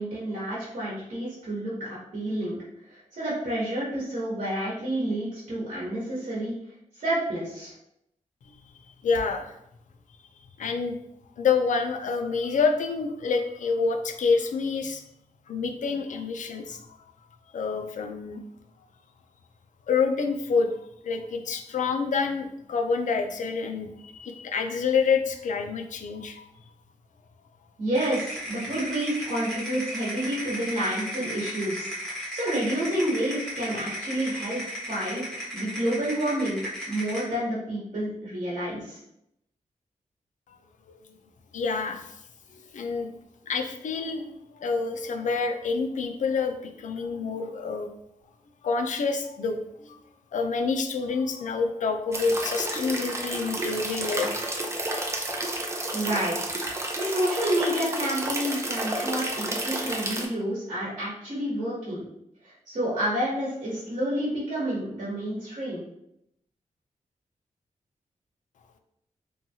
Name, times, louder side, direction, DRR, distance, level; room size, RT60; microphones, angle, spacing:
voice 1, 0.0-2.6 2.9-6.5 6.9-7.7 27.8-31.9 32.3-35.2 35.5-36.6 36.9-39.0 55.9-56.4 57.0-62.0 62.4-65.8, right 1 dB, 60° right, -8 dB, 1.1 m, -29 dB
voice 2, 9.0-9.5 10.6-11.0 11.4-15.0 15.5-16.8 17.5-18.4 19.9-20.7 21.0-26.4 40.9-41.0 41.5-42.1 42.5-43.1 43.5-47.9 48.6-50.0 50.3-54.5, left 5 dB, 65° left, 6 dB, 0.4 m, -27 dB
sound 1, 28.0-37.3, equal, 5° left, 1.1 m, -35 dB
sound 2, 52.1-60.3, right 1 dB, 20° right, 0.4 m, -31 dB
2.9 x 2.3 x 2.7 m, 0.78 s
wide cardioid pair, 125°, 14 cm